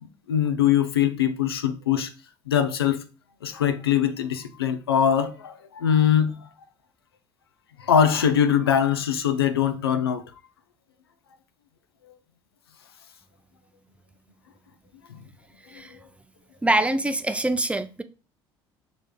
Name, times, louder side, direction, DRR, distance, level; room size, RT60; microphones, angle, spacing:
voice 1, 0.3-2.1 2.5-3.0 3.4-6.3 7.8-10.2 15.1-15.2, left 8 dB, 85° left, 0.4 m, -22 dB
voice 2, 16.6-18.0, right 2 dB, 10° right, 0.4 m, -24 dB
5.0 x 3.4 x 2.2 m
hypercardioid pair, 60°, 12 cm